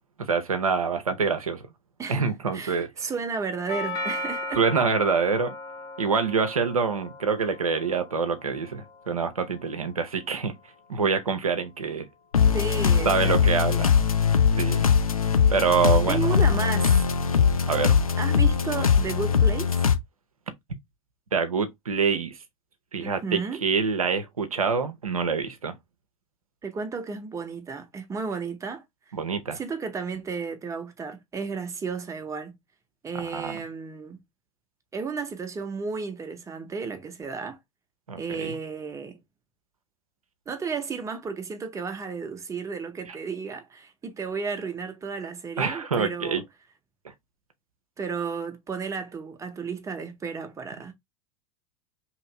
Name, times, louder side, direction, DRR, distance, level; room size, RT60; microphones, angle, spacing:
voice 1, 0.2-1.6 2.1-2.9 4.6-5.5 6.0-10.5 10.9-12.1 13.1-14.1 14.6-14.9 15.5-16.4 17.7-18.0 21.3-22.4 22.9-25.7 29.1-29.6 33.2-33.6 38.1-38.6 43.1-43.2 45.6-46.4, right 5 dB, 85° right, 0.5 m, -26 dB
voice 2, 2.5-4.6 12.5-13.7 16.1-17.0 18.2-19.8 23.0-23.6 26.6-28.8 29.5-32.5 33.0-34.2 34.9-37.6 38.2-39.2 40.5-46.4 48.0-50.9, right 5 dB, 15° right, 0.7 m, -33 dB
Doorbell, 3.7-11.7, left 2 dB, 20° left, 0.7 m, -38 dB
sound 1, 12.3-20.0, left 6 dB, 90° left, 0.5 m, -21 dB
2.9 x 2.4 x 3.0 m
figure-of-eight pair, 80°, 18 cm